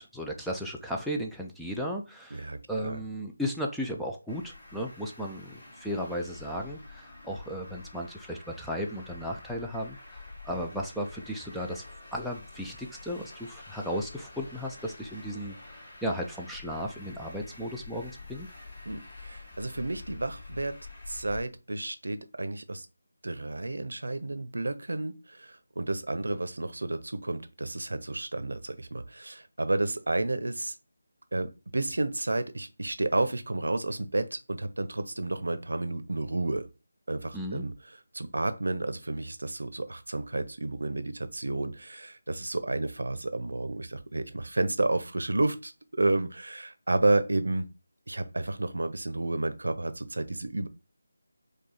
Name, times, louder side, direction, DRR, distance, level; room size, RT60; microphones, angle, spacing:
voice 1, 0.0-11.8 12.1-18.5 37.3-37.7, equal, ahead, 0.3 m, -35 dB
voice 2, 2.3-3.0 18.9-20.8 21.1-22.9 23.2-30.7 31.3-36.7 37.1-37.7 38.1-47.7 48.1-50.7, right 2 dB, 80° right, 0.6 m, -31 dB
Traffic noise roadway noise, 4.3-21.4, left 3 dB, 35° left, 2.5 m, -47 dB
4.9 x 2.3 x 4.0 m
figure-of-eight pair, 170°, 0 cm